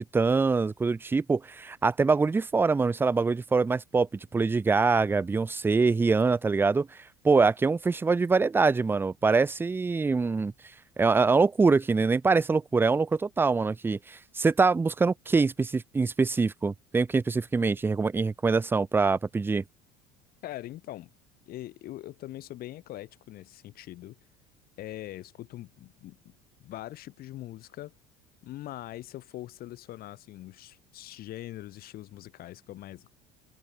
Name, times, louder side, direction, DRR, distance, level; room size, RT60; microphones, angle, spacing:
voice 1, 0.0-6.9 7.2-10.5 11.0-19.6, right 4 dB, 10° right, 0.4 m, -24 dB
voice 2, 20.4-21.1 21.5-24.2 24.8-26.2 26.6-27.9 28.4-33.1, left 15 dB, 60° left, 6.7 m, -42 dB
supercardioid pair, 85°, 17 cm